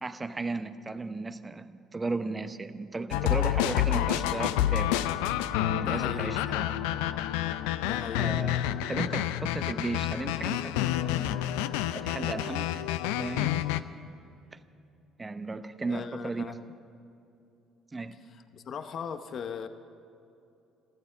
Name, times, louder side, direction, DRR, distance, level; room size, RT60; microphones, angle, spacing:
voice 1, 0.0-5.1 5.7-6.7 8.2-8.6 8.9-10.8 11.0-11.4 11.9-12.7 13.0-13.6 14.5-14.6 15.2-16.5 17.9-18.2, right 3 dB, 25° right, 11 dB, 0.9 m, -35 dB
sound 1, 3.1-13.8, left 12 dB, 85° left, 0.4 m, -29 dB
voice 2, 5.8-6.7 7.8-8.4 15.9-16.6 18.3-19.7, left 7 dB, 55° left, 10 dB, 0.8 m, -39 dB
14.0 x 13.5 x 7.3 m, 2.6 s
hypercardioid pair, 60°, 0 cm